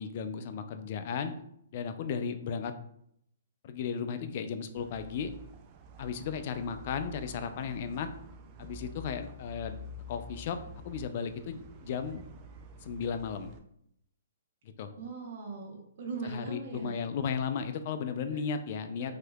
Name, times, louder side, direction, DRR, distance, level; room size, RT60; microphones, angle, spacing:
voice 1, 0.0-1.3 1.7-2.7 3.6-5.3 6.0-8.1 8.6-9.8 10.1-10.6 10.8-12.2 12.8-13.5 14.8-14.9 16.2-19.2, left 6 dB, 50° left, 9 dB, 0.3 m, -35 dB
sound 1, 4.8-13.6, equal, 35° right, 0.3 m, -48 dB
voice 2, 14.9-16.9 18.3-18.4 19.0-19.2, right 4 dB, 55° right, 0 dB, 0.8 m, -40 dB
3.1 x 2.8 x 2.3 m, 0.72 s
hypercardioid pair, 130°, 0 cm